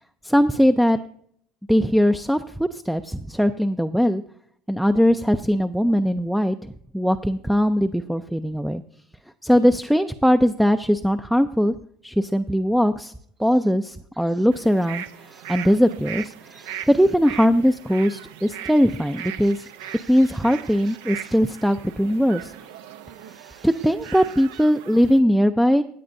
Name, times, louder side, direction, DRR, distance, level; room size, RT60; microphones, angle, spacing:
voice 1, 0.2-1.0 1.7-4.2 4.7-6.6 6.9-8.8 9.4-11.8 12.0-13.1 13.4-15.0 15.5-16.3 16.9-19.6 20.1-22.5 23.6-25.8, equal, ahead, 9 dB, 0.4 m, -20 dB
sound 1, 14.5-25.2, right 10 dB, 85° right, 0.6 m, -39 dB
voice 2, 16.5-16.9 19.4-20.1 20.9-21.4 23.2-23.7, right 3 dB, 15° right, 10 dB, 0.7 m, -52 dB
16.5 x 9.2 x 2.6 m, 0.66 s
supercardioid pair, 115°, 0 cm